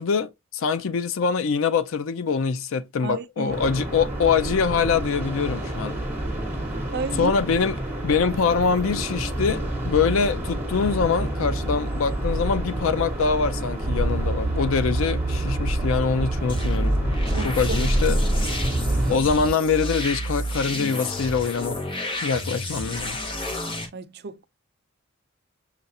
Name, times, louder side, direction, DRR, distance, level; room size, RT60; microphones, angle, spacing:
voice 1, 0.0-6.0 7.1-7.8 8.0-17.0 17.4-18.2 19.1-21.8 22.2-23.2, left 5 dB, 75° left, 0.4 m, -24 dB
voice 2, 3.0-3.5 6.9-7.3 17.3-18.2 23.9-24.4, right 4 dB, 50° right, 0.4 m, -32 dB
sound 1, 3.5-19.2, right 1 dB, 10° right, 1.3 m, -29 dB
sound 2, 13.8-19.5, right 2 dB, 85° right, 0.8 m, -29 dB
sound 3, 16.5-23.9, equal, 25° left, 0.8 m, -28 dB
6.6 x 2.4 x 2.7 m
head